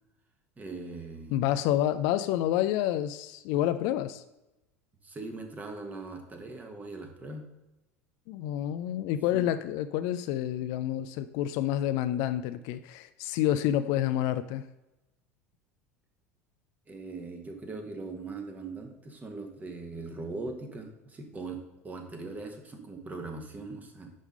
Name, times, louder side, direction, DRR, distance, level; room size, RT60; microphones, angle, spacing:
voice 1, 0.6-1.4 5.0-7.5 9.3-9.5 16.9-24.1, right 3 dB, 20° right, 4 dB, 1.3 m, -40 dB
voice 2, 1.3-4.2 8.3-14.6, left 12 dB, 50° left, 11 dB, 0.4 m, -28 dB
10.0 x 3.6 x 5.3 m, 0.97 s
figure-of-eight pair, 75°, 8 cm